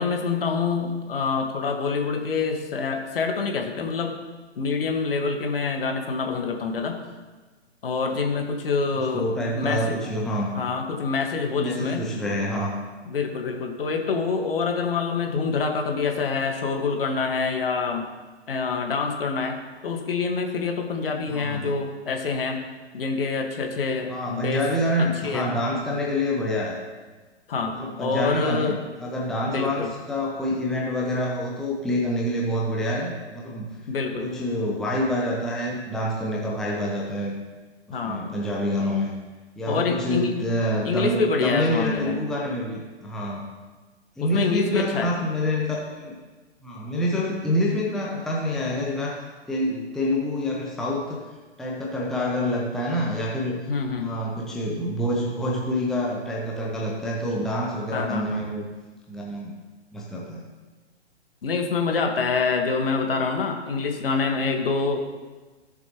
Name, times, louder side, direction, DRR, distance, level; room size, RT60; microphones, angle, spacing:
voice 1, 0.0-4.2 4.6-7.0 7.8-9.3 9.6-10.0 10.5-12.1 13.1-18.1 18.5-19.6 19.8-22.6 22.9-24.6 25.0-25.5 27.5-28.8 29.5-29.9 33.9-34.3 37.9-38.3 39.7-40.3 40.8-42.2 44.2-45.1 53.7-54.1 57.9-58.4 61.4-65.0, left 4 dB, 55° left, 3 dB, 1.7 m, -26 dB
voice 2, 9.0-10.6 11.5-12.7 21.3-21.8 24.1-26.8 27.7-33.7 34.2-37.4 37.9-39.1 39.6-43.4 44.2-46.2 46.6-49.2 49.5-51.2 51.6-53.6 54.0-58.6 59.1-59.5 59.9-60.4, left 1 dB, ahead, -3 dB, 0.8 m, -27 dB
16.0 x 7.0 x 3.0 m, 1.3 s
figure-of-eight pair, 120°, 34 cm